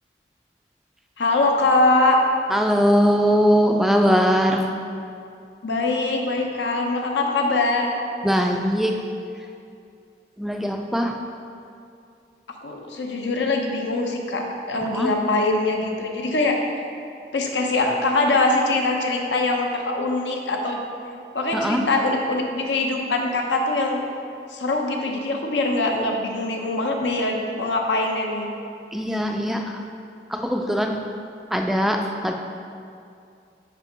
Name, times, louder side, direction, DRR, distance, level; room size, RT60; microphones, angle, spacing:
voice 1, 1.2-2.2 5.6-7.9 12.6-16.6 17.3-20.8 21.3-24.0 24.5-28.5, left 2 dB, 85° left, 1 dB, 0.8 m, -23 dB
voice 2, 2.5-4.7 8.2-8.9 10.4-11.2 14.9-15.1 21.5-21.8 28.9-29.7 30.3-31.0 31.5-32.3, equal, ahead, 3 dB, 0.3 m, -21 dB
5.3 x 5.3 x 5.2 m, 2.5 s
head